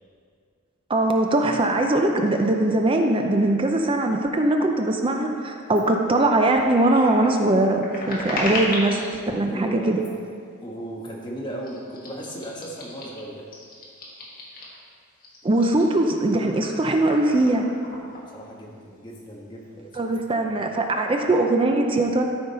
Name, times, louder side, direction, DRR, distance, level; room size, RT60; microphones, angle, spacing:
voice 1, 0.9-9.0 9.3-10.0 15.4-17.7 19.9-22.2, right 2 dB, 25° right, 3 dB, 0.5 m, -21 dB
sound 1, 5.7-5.8 6.2-9.1 9.9-10.3 11.0-11.2 11.6-14.8 15.2-18.8 19.1-19.2 19.5-20.2, left 1 dB, 40° left, 1.8 m, -36 dB
voice 2, 9.5-10.1 10.6-13.4 18.3-20.1 20.4-20.5, right 1 dB, 20° left, -3 dB, 1.3 m, -36 dB
13.0 x 5.2 x 4.2 m, 2.2 s
head